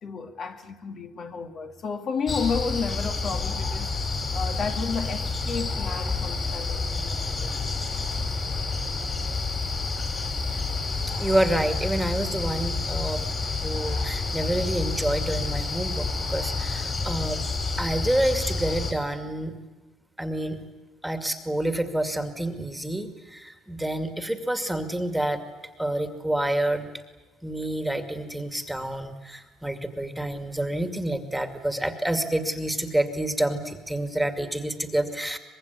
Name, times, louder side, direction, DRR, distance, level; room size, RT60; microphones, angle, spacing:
voice 1, 0.0-3.9 4.3-7.6, left 5 dB, 45° left, 2.2 m, -32 dB
sound 1, 2.3-18.9, left 3 dB, 30° left, 4.8 m, -29 dB
voice 2, 11.2-17.4 17.8-19.5 20.2-20.6 21.0-25.4 25.8-26.9 27.4-35.4, right 1 dB, 5° right, 2.3 m, -28 dB
24.5 x 21.5 x 9.5 m
cardioid pair, 125°, 0 cm